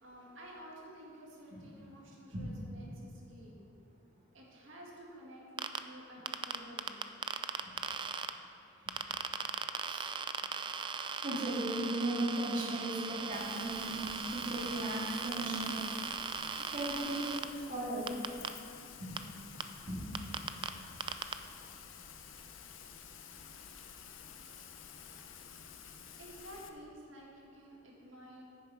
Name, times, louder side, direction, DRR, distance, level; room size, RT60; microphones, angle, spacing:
voice 1, 0.0-3.6 4.3-7.0 26.2-28.4, equal, 80° right, -3 dB, 2.0 m, -52 dB
sound 1, 5.6-5.8 6.3-8.3 8.9-17.4 18.1-18.5 19.2-19.3 19.6-19.7 20.1-20.7 21.0-21.3, right 6 dB, 25° right, 0.3 m, -38 dB
voice 2, 11.2-15.8 16.7-18.0 19.0-19.1 19.9-20.0, right 1 dB, 40° right, -5 dB, 2.3 m, -36 dB
Rain, 13.3-26.7, left 7 dB, 75° left, 0.6 m, -51 dB
9.8 x 7.2 x 4.7 m, 2.6 s
head